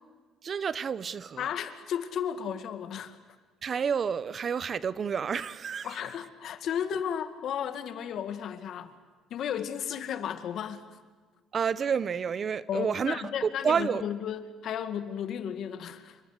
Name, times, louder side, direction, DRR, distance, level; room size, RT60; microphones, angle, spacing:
voice 1, 0.4-1.5 3.6-6.0 11.5-14.0, right 6 dB, 40° right, 0.8 m, -30 dB
voice 2, 1.4-3.2 5.8-8.9 9.3-10.8 12.7-16.2, left 9 dB, 60° left, 2.1 m, -34 dB
27.5 x 24.5 x 8.2 m
cardioid pair, 115°, 0 cm